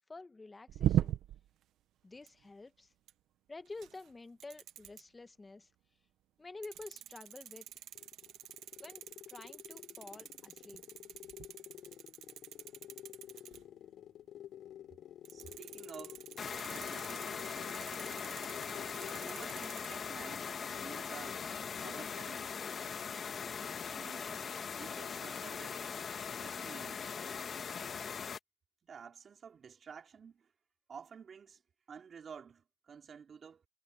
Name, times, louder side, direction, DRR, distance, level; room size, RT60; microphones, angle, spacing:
voice 1, 0.1-1.2 2.0-2.9 3.5-5.7 6.4-7.7 8.8-9.0 9.3-10.8, left 3 dB, 25° left, 1.6 m, -49 dB
sound 1, 0.7-1.5 2.1-2.5 3.1-3.2 3.7-4.1 4.4-5.0 6.6-13.6 15.2-20.0, right 12 dB, 75° right, 1.2 m, -40 dB
sound 2, 7.7-19.4, left 11 dB, 70° left, 6.2 m, -52 dB
voice 2, 15.3-16.2 16.7-17.3 19.2-21.5 21.8-22.5 23.9-24.5 24.8-25.8 26.4-27.1 28.8-30.5 30.9-31.6 31.9-33.7, right 6 dB, 50° right, 4.2 m, -51 dB
sound 3, 16.4-28.4, left 6 dB, 45° left, 1.7 m, -40 dB
supercardioid pair, 75°, 0 cm